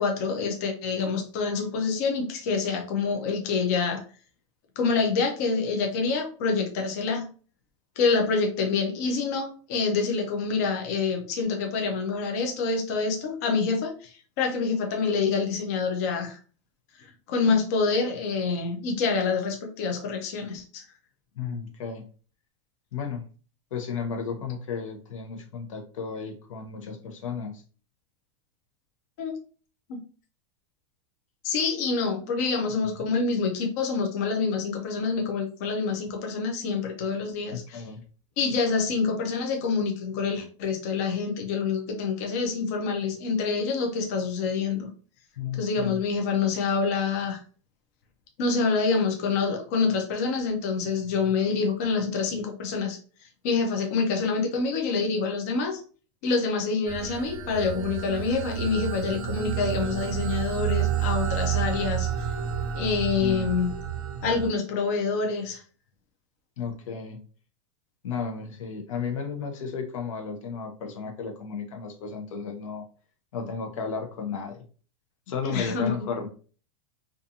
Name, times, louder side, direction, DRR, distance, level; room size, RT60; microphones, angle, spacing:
voice 1, 0.0-4.0 4.8-7.3 8.0-16.4 16.9-20.8 29.2-29.3 29.9-30.0 31.4-37.8 38.4-44.9 45.6-47.4 48.4-53.0 53.4-55.8 56.2-62.1 62.8-63.7 64.2-65.6 75.4-75.9, left 4 dB, 30° left, 3 dB, 0.4 m, -26 dB
voice 2, 21.4-22.1 22.9-23.2 23.7-27.6 32.6-33.1 37.5-38.0 45.4-46.0 63.2-63.6 66.6-67.2 68.0-72.8 73.3-74.6 75.3-76.3, left 6 dB, 85° left, 4 dB, 0.7 m, -34 dB
sound 1, 56.9-64.5, right 9 dB, 45° right, 0.5 m, -30 dB
2.5 x 2.4 x 2.6 m, 0.40 s
supercardioid pair, 180°, 16 cm